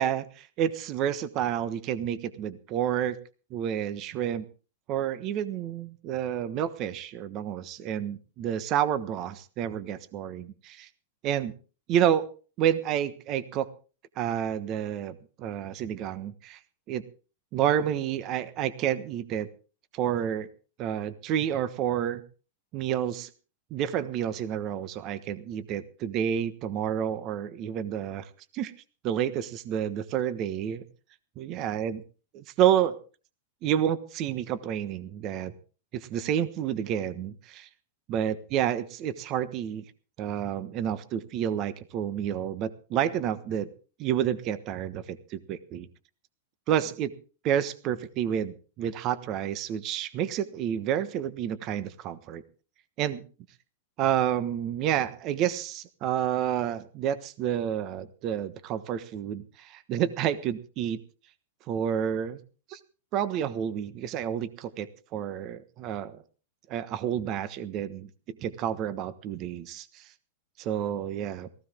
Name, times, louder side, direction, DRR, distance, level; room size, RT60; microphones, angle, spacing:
voice 1, 0.0-3.2 3.5-4.5 4.9-10.9 11.2-11.5 11.9-12.3 12.6-13.7 14.2-16.6 16.9-17.0 17.5-19.5 19.9-20.5 20.8-22.2 22.7-23.3 23.7-28.7 29.0-30.8 31.4-32.0 32.3-33.0 33.6-35.5 35.9-37.7 38.1-39.8 40.2-43.7 44.0-45.9 46.7-47.1 47.4-52.4 53.0-53.2 54.0-61.0 61.7-62.4 62.7-62.8 63.1-66.2 66.7-70.0 70.6-71.5, right 10 dB, 35° right, 14 dB, 1.3 m, -29 dB
18.0 x 15.5 x 3.7 m, 0.36 s
supercardioid pair, 145°, 0 cm